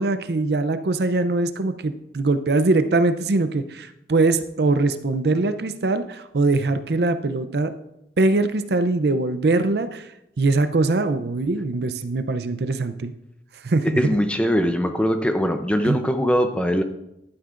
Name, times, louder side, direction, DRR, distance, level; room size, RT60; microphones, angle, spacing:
voice 1, 0.0-7.7 8.2-10.1 10.4-13.1 13.6-14.1 15.8-16.0, right 3 dB, 65° right, 10 dB, 0.5 m, -22 dB
voice 2, 13.8-16.8, equal, 5° left, 7 dB, 0.6 m, -21 dB
11.5 x 9.2 x 2.5 m, 0.85 s
head